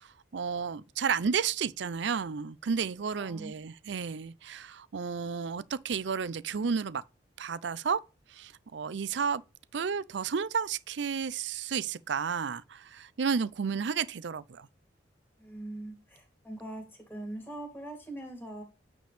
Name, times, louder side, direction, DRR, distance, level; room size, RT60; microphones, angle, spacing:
voice 1, 0.0-7.0 7.4-8.0 8.3-9.4 9.7-14.7, right 6 dB, 70° right, 0.5 m, -32 dB
voice 2, 3.2-3.6 15.4-18.6, right 1 dB, 10° left, 3.0 m, -42 dB
9.0 x 5.1 x 3.5 m
head